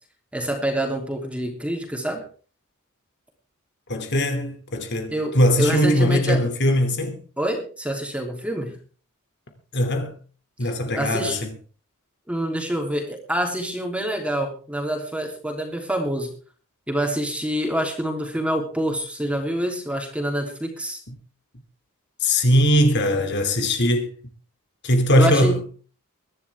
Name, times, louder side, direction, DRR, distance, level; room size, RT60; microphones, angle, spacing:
voice 1, 0.3-2.2 5.1-6.4 7.4-8.8 10.6-10.7 10.9-11.4 12.3-16.3 16.9-21.0 25.2-25.6, right 1 dB, 5° right, 3.3 m, -26 dB
voice 2, 3.9-7.2 9.7-10.1 10.6-11.5 22.2-24.1 24.8-25.6, equal, 50° left, 2.8 m, -20 dB
23.0 x 11.0 x 3.6 m
head